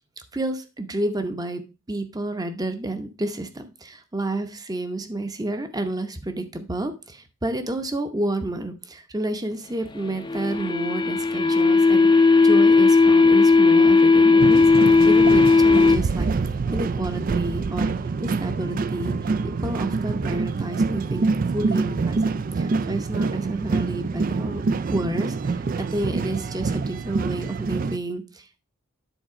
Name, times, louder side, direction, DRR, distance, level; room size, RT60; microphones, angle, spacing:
voice 1, 0.3-1.6 1.9-14.7 15.0-16.3 16.7-17.9 18.2-19.2 19.6-24.6 24.9-28.6, right 1 dB, 15° right, 8 dB, 0.8 m, -30 dB
sound 1, 10.0-16.0, left 4 dB, 20° left, 0.6 m, -16 dB
sound 2, 14.4-28.0, right 4 dB, 40° right, 0.3 m, -26 dB
10.0 x 4.2 x 4.8 m, 0.31 s
head